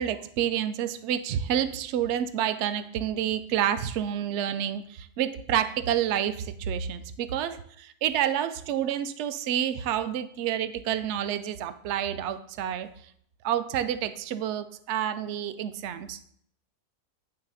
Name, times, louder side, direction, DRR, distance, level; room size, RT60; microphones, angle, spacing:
voice 1, 0.0-12.9 13.4-16.2, right 10 dB, 70° right, 12 dB, 0.6 m, -29 dB
8.9 x 3.3 x 5.5 m, 0.65 s
omnidirectional pair, 1.6 m